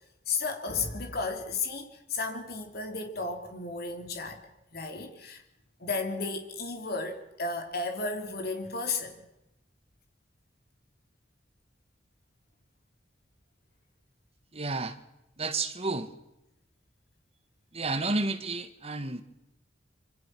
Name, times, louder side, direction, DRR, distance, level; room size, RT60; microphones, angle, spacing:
voice 1, 0.3-4.4 4.7-5.4 5.8-9.2, left 3 dB, 55° left, 3.5 m, -33 dB
voice 2, 14.5-15.0 15.4-16.1 17.7-19.2, right 3 dB, 35° right, 1.7 m, -31 dB
26.5 x 26.0 x 6.2 m
head